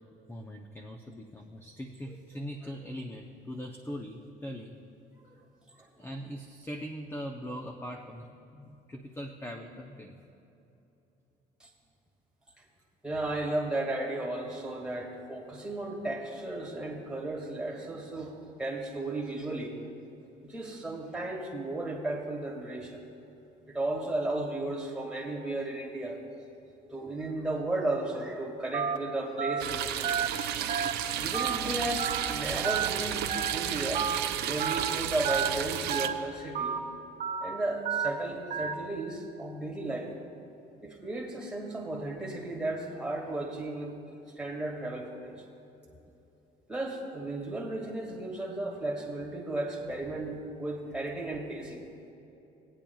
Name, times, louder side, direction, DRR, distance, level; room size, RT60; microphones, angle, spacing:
voice 1, 0.3-4.8 6.0-8.3 8.5-10.2, equal, 15° left, 3 dB, 0.7 m, -41 dB
voice 2, 5.7-6.1 11.6-11.7 13.0-19.7 20.4-23.0 23.7-26.2 26.9-30.3 31.2-34.1 34.5-36.8 37.4-40.1 40.8-44.0 44.3-45.4 46.7-51.8, right 2 dB, 5° right, -2 dB, 2.0 m, -34 dB
Telephone, 28.7-29.0 29.4-29.6 30.0-30.3 30.7-30.9 31.3-31.6 32.0-32.2 32.6-32.9 33.3-33.5 33.9-34.2 34.6-34.8 35.2-35.5 35.9-36.1 36.5-36.8 37.2-37.4 37.9-38.1 38.5-38.7, right 8 dB, 50° right, 1.0 m, -30 dB
sound 1, 29.6-36.1, right 10 dB, 75° right, 0.6 m, -32 dB
19.5 x 8.8 x 2.3 m, 2.9 s
cardioid pair, 110°, 17 cm